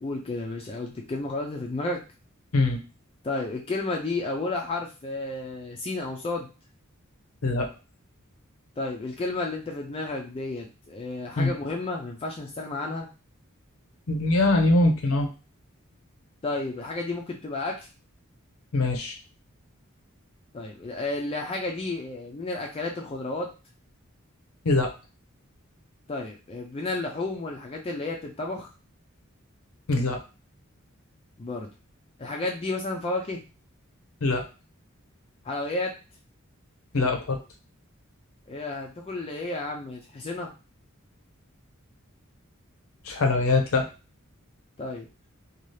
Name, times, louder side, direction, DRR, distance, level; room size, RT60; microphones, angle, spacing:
voice 1, 0.0-2.0 3.2-6.5 8.8-13.1 16.4-17.9 20.5-23.5 26.1-28.7 31.4-31.7 32.2-33.4 35.4-35.9 38.5-40.5 44.8-45.1, left 2 dB, 25° left, 1 dB, 0.4 m, -32 dB
voice 2, 14.1-15.3 18.7-19.1 24.6-24.9 29.9-30.2 34.2-34.4 36.9-37.4 43.0-43.9, left 2 dB, 85° left, 3 dB, 0.6 m, -22 dB
2.7 x 2.3 x 3.1 m, 0.32 s
head